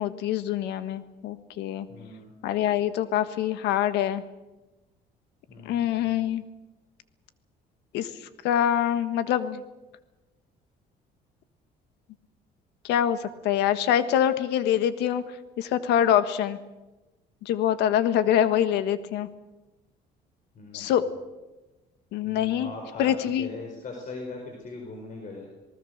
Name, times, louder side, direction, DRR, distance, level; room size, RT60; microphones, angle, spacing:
voice 1, 0.0-1.9 2.4-4.2 5.6-6.4 7.9-8.1 8.4-9.6 12.8-15.2 15.6-16.6 17.4-19.3 20.7-21.0 22.1-22.7 23.0-23.5, left 10 dB, 85° left, 11 dB, 1.5 m, -24 dB
voice 2, 1.9-2.3 5.5-6.1 20.5-21.0 22.2-25.5, left 3 dB, 50° left, 2 dB, 4.7 m, -40 dB
27.5 x 19.5 x 6.6 m, 1.1 s
cardioid pair, 110°, 17 cm